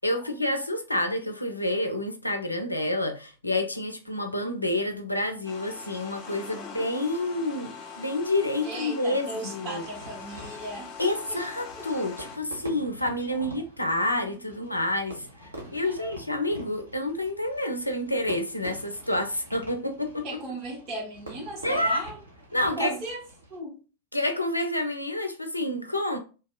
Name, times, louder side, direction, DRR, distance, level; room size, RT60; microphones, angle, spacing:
voice 1, 0.0-9.8 11.0-20.3 21.6-22.0 22.5-23.0 24.1-26.2, left 1 dB, 85° left, 0.5 m, -28 dB
sound 1, 5.4-12.4, left 5 dB, 40° left, 1.2 m, -42 dB
voice 2, 8.6-11.4 13.3-13.4 14.2-14.4 15.8-16.1 20.2-22.2 22.8-23.2 23.5-23.8, right 1 dB, 40° right, 1.6 m, -37 dB
Fireworks, 9.7-23.6, right 1 dB, 75° right, 1.1 m, -46 dB
2.9 x 2.9 x 3.6 m
figure-of-eight pair, 90°, 0 cm